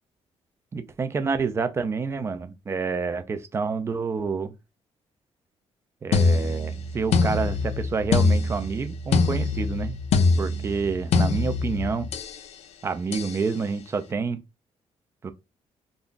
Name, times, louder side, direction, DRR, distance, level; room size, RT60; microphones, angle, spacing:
voice 1, 0.7-4.5 6.0-9.9 10.4-12.1 12.8-14.4 15.2-15.3, right 5 dB, 25° right, 0.4 m, -28 dB
sound 1, 6.1-12.4 13.1-13.4, left 4 dB, 70° left, 0.5 m, -24 dB
2.5 x 2.2 x 3.7 m
cardioid pair, 160°, 11 cm